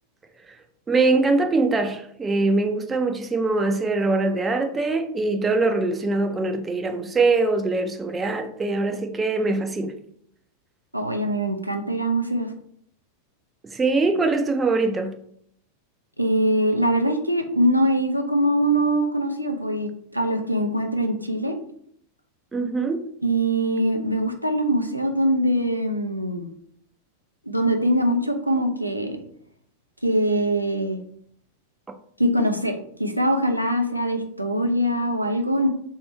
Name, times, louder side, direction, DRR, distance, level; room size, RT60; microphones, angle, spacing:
voice 1, 0.9-9.9 13.7-15.1 22.5-23.0, right 3 dB, 15° right, 0.4 m, -22 dB
voice 2, 10.9-12.5 16.2-21.6 23.2-26.5 27.5-29.2 30.0-31.0 32.2-35.7, right 1 dB, 90° right, 0.5 m, -23 dB
3.4 x 2.8 x 4.2 m
figure-of-eight pair, 90°, 0 cm